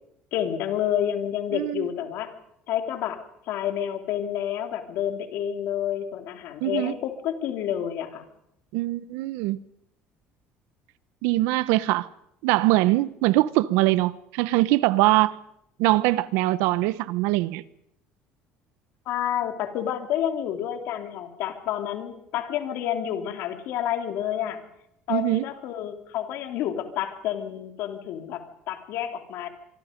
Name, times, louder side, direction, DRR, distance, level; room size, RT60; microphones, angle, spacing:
voice 1, 0.3-2.3 2.7-8.3 19.0-24.6 25.1-29.5, left 10 dB, 60° left, 3.1 m, -29 dB
voice 2, 1.5-1.9 6.6-6.9 8.7-9.6 11.2-12.1 12.4-15.3 15.8-17.6 25.1-25.4, right 18 dB, 90° right, 1.0 m, -22 dB
25.5 x 24.5 x 5.3 m
cardioid pair, 165°, 4 cm